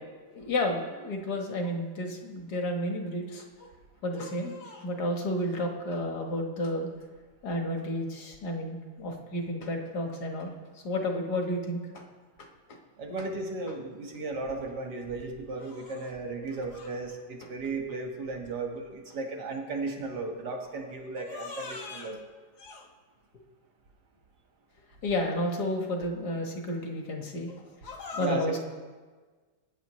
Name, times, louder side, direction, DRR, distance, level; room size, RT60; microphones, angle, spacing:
voice 1, 0.3-3.7 4.0-6.9 7.4-10.5 10.8-12.0 21.2-22.1 22.6-22.8 25.0-28.6, left 1 dB, 70° left, 2 dB, 2.0 m, -32 dB
voice 2, 13.0-22.2 28.1-28.6, right 3 dB, 75° right, 2 dB, 2.1 m, -35 dB
20.0 x 9.2 x 3.1 m, 1.4 s
omnidirectional pair, 1.8 m